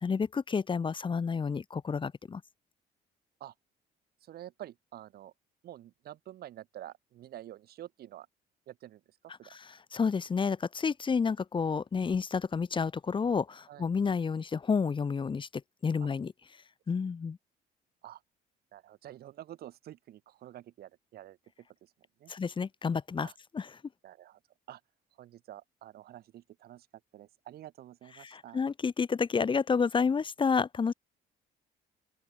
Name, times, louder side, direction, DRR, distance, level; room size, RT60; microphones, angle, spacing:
voice 1, 0.0-2.4 9.5-15.5 15.8-16.3 16.9-17.4 22.3-23.7 28.2-30.9, left 5 dB, 30° left, 1.8 m, -30 dB
voice 2, 4.2-5.3 5.6-8.3 8.7-9.0 9.4-9.5 13.7-13.9 16.0-16.1 18.0-18.2 18.7-21.4 21.8-21.9 22.2-22.3 23.2-23.3 24.0-24.4 24.7-24.8 25.2-26.9 27.1-28.6, right 13 dB, 65° right, 4.8 m, -48 dB
open air
cardioid pair, 110°, 17 cm